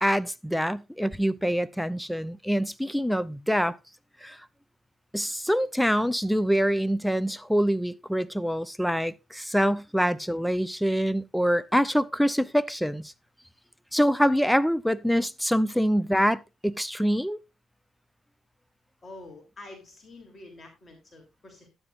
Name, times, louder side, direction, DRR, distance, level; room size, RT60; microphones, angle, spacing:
voice 1, 0.0-3.8 4.2-4.4 5.1-13.1 13.9-17.4, equal, ahead, 0.6 m, -25 dB
voice 2, 19.0-21.7, left 2 dB, 35° left, 3.3 m, -47 dB
12.0 x 9.8 x 2.5 m
cardioid pair, 90°, 0 cm